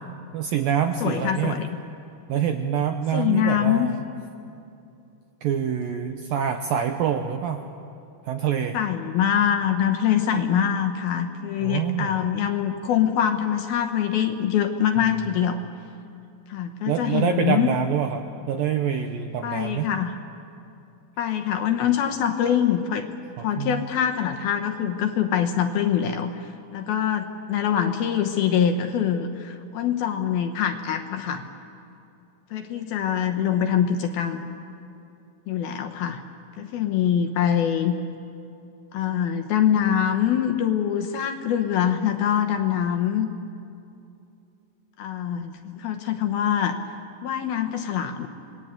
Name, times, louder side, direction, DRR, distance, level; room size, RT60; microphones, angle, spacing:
voice 1, 0.3-1.6 2.3-4.0 5.4-7.6 8.2-8.8 11.6-12.3 15.0-15.1 16.9-19.9 23.4-23.8, right 8 dB, 75° right, 5 dB, 2.1 m, -26 dB
voice 2, 1.0-1.7 3.1-3.9 8.7-15.6 16.5-17.7 19.4-20.2 21.2-23.1 23.4-31.4 32.5-34.4 35.5-36.2 36.6-37.9 38.9-43.3 45.0-46.8 47.2-48.3, left 9 dB, 70° left, 5 dB, 2.5 m, -24 dB
27.5 x 20.5 x 9.0 m, 2.7 s
omnidirectional pair, 5.2 m